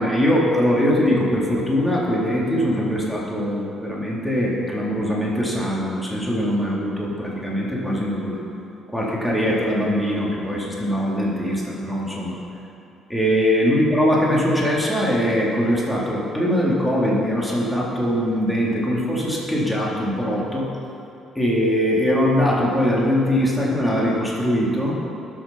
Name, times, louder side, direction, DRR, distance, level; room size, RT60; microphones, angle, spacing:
voice 1, 0.0-8.4 8.9-12.3 13.1-20.7 21.4-24.9, equal, 5° left, -5 dB, 3.7 m, -21 dB
19.5 x 7.4 x 5.9 m, 2.7 s
figure-of-eight pair, 45°, 0 cm